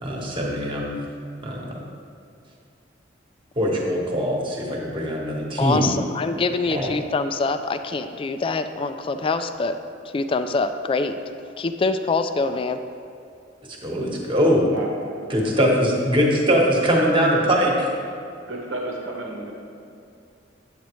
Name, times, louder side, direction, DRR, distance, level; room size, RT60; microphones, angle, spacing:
voice 1, 0.0-1.0 1.4-1.7 3.5-5.9 6.7-6.9 13.8-14.7 15.3-17.9, equal, 25° right, -2 dB, 1.2 m, -21 dB
voice 2, 5.6-9.7 10.0-11.2 11.6-12.8, left 3 dB, 30° left, 9 dB, 0.3 m, -24 dB
voice 3, 14.7-15.2 18.5-19.5, right 1 dB, 80° right, 0 dB, 1.2 m, -32 dB
8.8 x 8.1 x 3.1 m, 2.5 s
head